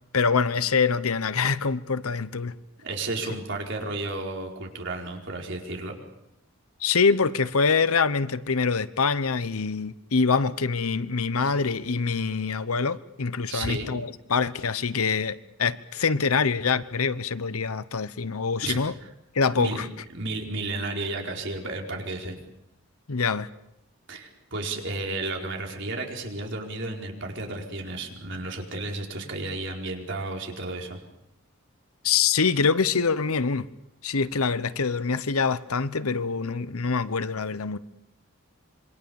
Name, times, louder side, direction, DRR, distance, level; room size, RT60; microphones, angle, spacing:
voice 1, 0.1-2.5 6.8-18.9 19.3-19.9 23.1-23.5 32.0-33.7 34.0-37.8, left 5 dB, 85° left, 15 dB, 1.0 m, -25 dB
voice 2, 2.8-5.9 13.5-13.9 18.6-18.8 19.6-19.9 20.1-22.4 24.1-31.0, right 2 dB, 55° right, 1 dB, 4.6 m, -32 dB
26.5 x 23.5 x 7.2 m, 0.85 s
head